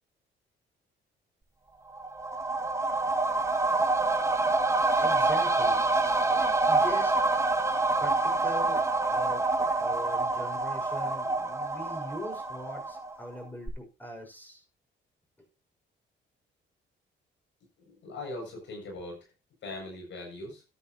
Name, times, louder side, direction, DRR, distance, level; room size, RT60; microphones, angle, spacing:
sound 1, 1.9-13.3 13.7-13.8, right 3 dB, 15° right, 1.7 m, -27 dB
voice 1, 5.0-7.1 8.0-9.4 9.8-14.6 15.4-15.5, equal, 10° left, 2 dB, 6.0 m, -41 dB
voice 2, 17.8-19.3 19.6-20.6, left 2 dB, 70° left, 1 dB, 7.4 m, -40 dB
13.0 x 9.8 x 3.0 m, 0.29 s
cardioid pair, 90°, 20 cm